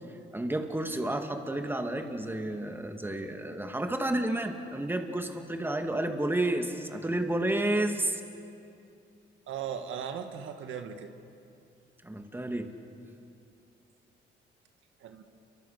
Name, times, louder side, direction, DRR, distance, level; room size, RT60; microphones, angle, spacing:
voice 1, 0.3-8.2 12.0-12.7, right 1 dB, 10° right, 5 dB, 2.3 m, -31 dB
voice 2, 9.5-11.1 15.0-15.2, right 8 dB, 80° right, 7 dB, 1.9 m, -37 dB
29.5 x 24.5 x 6.7 m, 2.6 s
cardioid pair, 90°, 20 cm